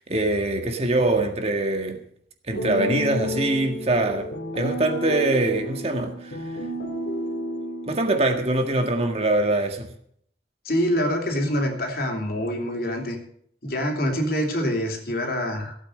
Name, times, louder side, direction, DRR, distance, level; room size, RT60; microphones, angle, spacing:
voice 1, 0.0-2.0 2.5-4.3 4.5-6.4 7.9-9.9, right 2 dB, 35° right, 4 dB, 1.8 m, -23 dB
sound 1, 2.5-8.5, left 1 dB, 80° left, 2.4 m, -31 dB
voice 2, 10.6-13.2 13.6-15.7, equal, 55° left, 2 dB, 3.2 m, -25 dB
16.0 x 8.9 x 6.5 m, 0.65 s
head